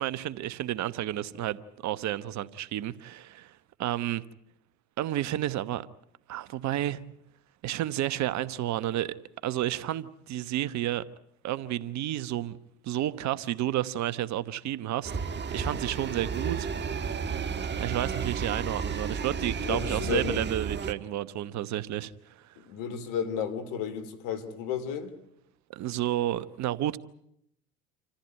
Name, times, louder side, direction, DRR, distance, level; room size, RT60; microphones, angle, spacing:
voice 1, 0.0-3.5 3.8-4.2 5.0-5.9 6.3-7.0 7.6-9.2 9.4-11.0 11.4-12.6 12.8-15.1 15.5-16.7 17.8-22.1 25.7-27.0, right 13 dB, 50° right, 1.1 m, -31 dB
sound 1, 15.0-20.9, right 6 dB, 30° right, 1.6 m, -32 dB
voice 2, 19.6-20.5 22.6-25.1, left 7 dB, 70° left, 3.0 m, -33 dB
27.0 x 14.5 x 9.2 m
hypercardioid pair, 80°, 35 cm